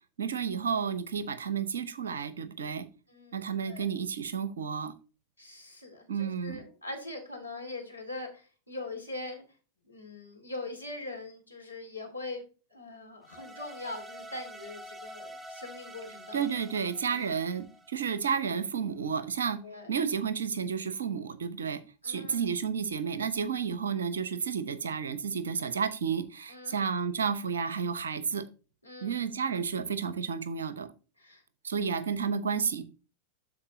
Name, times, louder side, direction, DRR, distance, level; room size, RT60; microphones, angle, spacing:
voice 1, 0.2-2.9 3.3-4.9 6.1-6.6 16.3-19.6 19.9-28.4 29.0-30.9 31.6-32.8, right 6 dB, 70° right, 15 dB, 0.8 m, -31 dB
voice 2, 3.1-3.9 5.4-9.4 9.9-12.4 12.7-16.4 19.6-19.9 22.0-22.4 25.6-25.8 26.5-26.8 28.8-29.2 31.2-31.4, left 2 dB, 85° left, 2 dB, 2.1 m, -42 dB
sound 1, 13.2-18.4, equal, 5° right, 0.9 m, -47 dB
12.0 x 4.4 x 2.7 m, 0.34 s
figure-of-eight pair, 90°, 0 cm